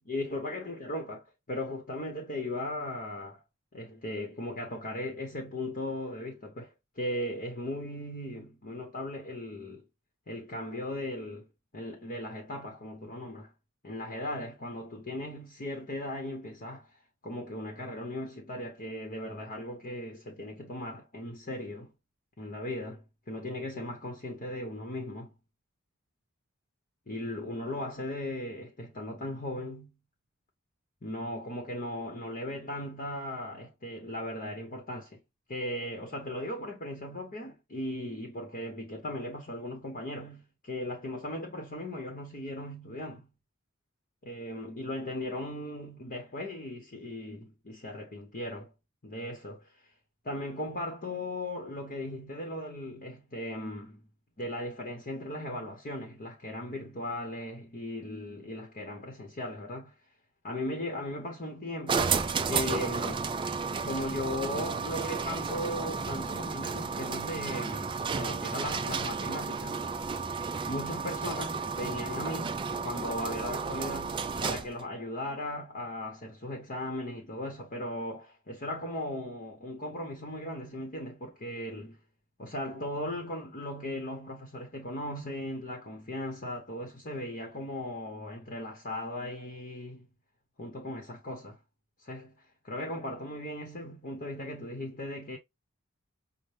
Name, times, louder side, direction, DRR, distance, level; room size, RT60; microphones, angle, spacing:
voice 1, 0.1-3.4 3.7-9.8 10.3-11.5 11.7-13.5 13.8-16.9 17.2-21.9 22.4-25.3 27.1-29.9 31.0-35.2 35.5-43.3 44.2-48.7 49.0-49.8 50.2-54.0 54.4-59.9 60.4-63.3 63.8-69.8 70.7-82.0 82.4-90.1 90.6-91.6 92.0-92.3 92.6-95.4, left 1 dB, 40° left, 0.9 m, -37 dB
sound 1, 61.9-74.8, right 5 dB, 25° right, 0.3 m, -32 dB
5.5 x 2.2 x 3.2 m
head